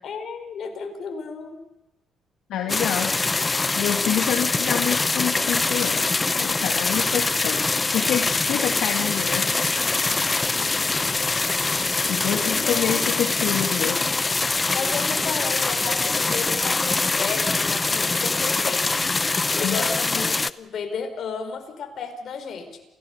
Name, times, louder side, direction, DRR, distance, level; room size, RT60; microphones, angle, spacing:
voice 1, 0.0-1.6 10.5-10.9 12.4-13.1 14.7-19.1 19.5-22.8, left 5 dB, 60° left, 6 dB, 4.7 m, -33 dB
voice 2, 2.5-3.1 3.8-9.5 12.1-14.1 15.9-16.0 19.6-19.9, left 9 dB, 80° left, 3 dB, 2.0 m, -27 dB
sound 1, 2.7-20.5, left 3 dB, 20° left, 0.7 m, -23 dB
28.0 x 17.0 x 7.1 m, 0.99 s
cardioid pair, 100°, 0 cm